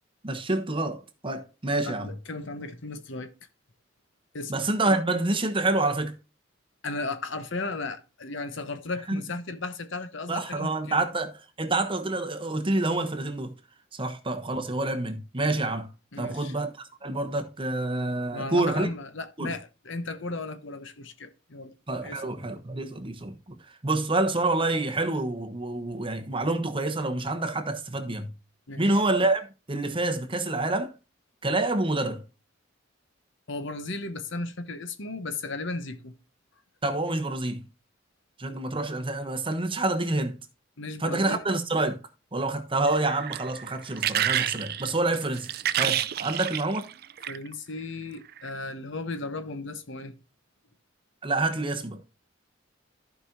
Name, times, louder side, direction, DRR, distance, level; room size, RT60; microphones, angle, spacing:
voice 1, 0.2-2.1 4.5-6.2 9.1-9.2 10.3-11.3 11.6-13.5 13.9-15.9 16.2-16.7 17.0-18.9 19.4-19.5 21.9-28.3 28.8-30.9 31.4-32.2 36.8-37.6 38.4-40.4 41.0-42.0 42.3-45.5 45.8-46.9 51.2-52.0, right 2 dB, 25° right, 1.1 m, -27 dB
voice 2, 1.8-3.3 4.3-4.5 6.8-11.0 16.1-16.5 18.3-21.7 22.0-22.2 28.7-28.9 33.5-36.1 40.8-41.4 47.3-50.1, left 3 dB, 65° left, 1.0 m, -35 dB
sound 1, 42.9-47.5 48.3-48.5, right 11 dB, 50° right, 0.5 m, -29 dB
14.5 x 5.3 x 2.7 m
head